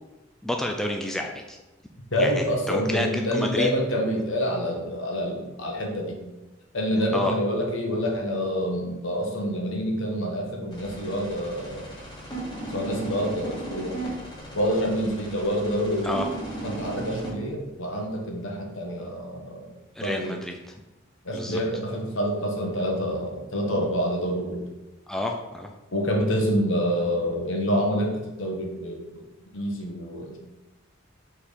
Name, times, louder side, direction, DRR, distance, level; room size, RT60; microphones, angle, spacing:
voice 1, 0.4-1.6 2.2-3.1 3.3-3.7 7.1-7.3 16.0-16.3 20.0-20.5 21.3-21.6 25.1-25.7, left 1 dB, ahead, 2 dB, 0.4 m, -29 dB
voice 2, 2.1-6.2 6.7-11.9 12.7-14.0 14.5-16.1 16.6-19.7 20.0-20.4 21.2-24.6 25.9-29.2 29.5-30.4, equal, 75° left, 1 dB, 1.3 m, -27 dB
sound 1, 10.7-17.3, right 1 dB, 20° left, 1.6 m, -36 dB
4.5 x 4.4 x 5.1 m, 1.0 s
head